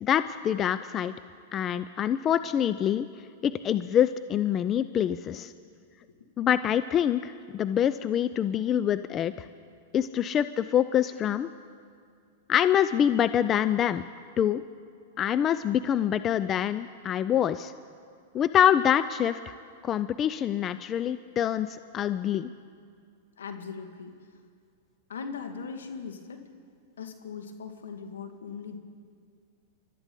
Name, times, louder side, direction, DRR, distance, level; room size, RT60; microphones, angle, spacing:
voice 1, 0.0-1.1 1.5-3.1 3.4-5.5 6.4-9.5 9.9-11.5 12.5-14.0 14.4-14.6 15.2-17.7 18.3-19.5 19.8-22.5, left 10 dB, 30° left, 13 dB, 0.4 m, -25 dB
voice 2, 23.4-24.2 25.1-26.4 27.0-28.8, left 5 dB, 80° left, 5 dB, 1.8 m, -39 dB
29.5 x 12.5 x 3.8 m, 2.2 s
hypercardioid pair, 110°, 0 cm